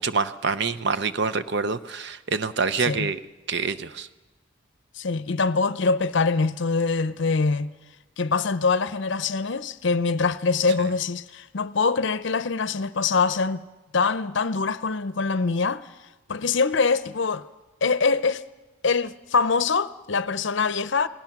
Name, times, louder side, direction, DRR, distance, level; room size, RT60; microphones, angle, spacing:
voice 1, 0.0-3.2 3.5-4.1, right 4 dB, 55° right, 0.7 m, -26 dB
voice 2, 5.0-7.7 8.2-13.6 13.9-15.9 16.3-17.4 17.8-18.4 18.8-21.1, left 4 dB, 60° left, 0.6 m, -24 dB
29.0 x 18.0 x 6.0 m
head